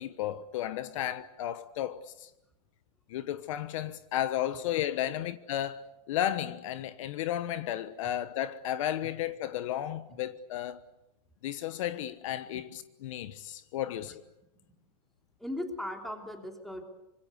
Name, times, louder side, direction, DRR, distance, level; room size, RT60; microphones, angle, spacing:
voice 1, 0.0-2.3 3.1-10.8 11.4-14.2, left 12 dB, 55° left, 1.2 m, -33 dB
voice 2, 15.4-16.8, left 1 dB, ahead, 3.2 m, -38 dB
25.5 x 25.5 x 8.3 m
supercardioid pair, 170°, 19 cm